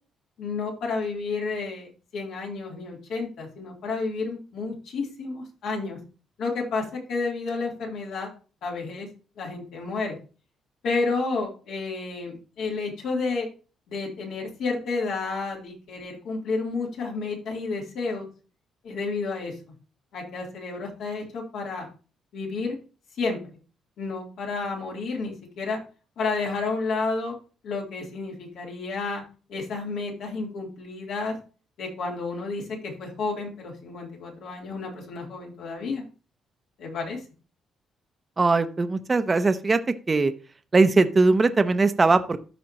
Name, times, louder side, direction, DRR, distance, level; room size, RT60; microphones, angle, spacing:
voice 1, 0.4-6.0 6.4-8.3 8.6-9.1 9.4-10.2 10.8-13.5 13.9-18.3 18.8-19.5 20.1-21.9 22.3-22.8 23.2-23.4 24.0-25.8 26.2-27.4 27.6-29.2 29.5-31.3 31.8-36.0 36.8-37.2, left 4 dB, 80° left, -1 dB, 3.3 m, -31 dB
voice 2, 38.4-39.8 40.1-40.3 40.7-42.4, right 3 dB, 30° right, 10 dB, 0.7 m, -20 dB
13.0 x 5.1 x 3.0 m, 0.36 s
cardioid pair, 90°, 0 cm